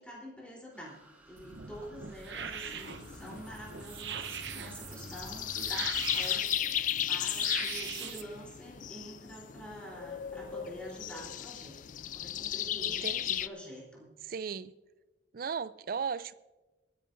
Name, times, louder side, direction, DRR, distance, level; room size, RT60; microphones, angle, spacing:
voice 1, 0.0-11.7 12.1-14.1, equal, 5° left, 3.6 m, -47 dB
sound 1, 0.7-6.2, equal, 10° right, 1.4 m, -52 dB
sound 2, 1.4-8.2, right 8 dB, 75° right, 0.8 m, -42 dB
sound 3, 2.3-13.5, left 10 dB, 45° left, 0.3 m, -36 dB
voice 2, 12.8-13.4 14.3-14.7 15.3-16.3, right 6 dB, 50° right, 0.4 m, -36 dB
26.5 x 10.0 x 2.6 m
head